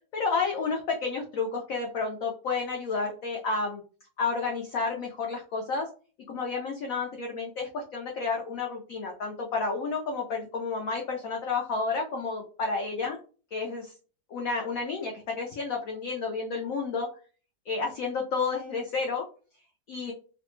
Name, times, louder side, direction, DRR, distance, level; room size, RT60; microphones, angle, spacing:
voice 1, 0.1-3.8 4.2-5.9 6.3-13.2 13.5-13.9 14.3-17.1 17.7-19.2 19.9-20.1, left 4 dB, 90° left, 1 dB, 0.7 m, -31 dB
3.2 x 2.1 x 3.0 m, 0.38 s
omnidirectional pair, 2.0 m